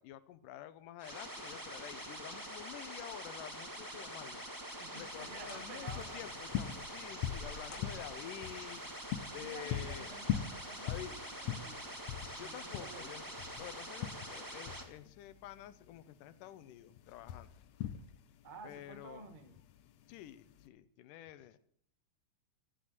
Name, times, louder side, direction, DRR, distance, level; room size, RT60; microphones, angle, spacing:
voice 1, 0.0-4.5 4.9-8.8 9.3-10.1 10.8-11.1 12.4-17.5 18.6-19.3 20.1-21.6, left 12 dB, 85° left, 12 dB, 2.4 m, -49 dB
sound 1, 1.0-14.8, right 1 dB, 15° right, 0.7 m, -45 dB
sound 2, 3.9-4.1 4.6-5.1 5.4-5.7 6.3-8.5 9.7-10.3 10.7-10.8 11.5-11.8 12.1-12.2, left 4 dB, 50° left, 1.8 m, -54 dB
voice 2, 4.8-6.2 9.4-11.9 12.4-13.1 18.4-19.6, right 4 dB, 65° right, 8 dB, 0.4 m, -51 dB
sound 3, 5.0-20.7, left 10 dB, 70° left, 1.9 m, -42 dB
15.0 x 9.4 x 7.9 m, 0.64 s
omnidirectional pair, 3.6 m